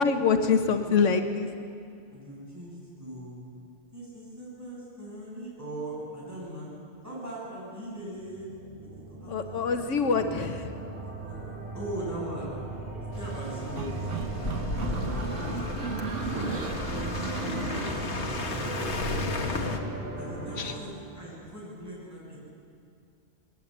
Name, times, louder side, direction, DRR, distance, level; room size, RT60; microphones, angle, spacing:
voice 1, 0.0-1.5 9.3-10.7 20.6-20.8, left 5 dB, 80° left, 7 dB, 1.3 m, -25 dB
voice 2, 2.1-3.4 3.9-6.7 7.0-8.5 9.0-9.6 9.9-10.4 11.2-12.5 13.2-15.6 16.2-19.3 20.2-22.4, right 1 dB, 15° right, -6 dB, 7.7 m, -40 dB
sound 1, 8.0-20.8, right 2 dB, 45° right, 3.0 m, -37 dB
sound 2, 13.1-19.8, left 4 dB, 65° left, 1.7 m, -35 dB
sound 3, 13.8-18.6, right 5 dB, 80° right, 1.5 m, -36 dB
20.5 x 18.5 x 8.0 m, 2.4 s
omnidirectional pair, 1.2 m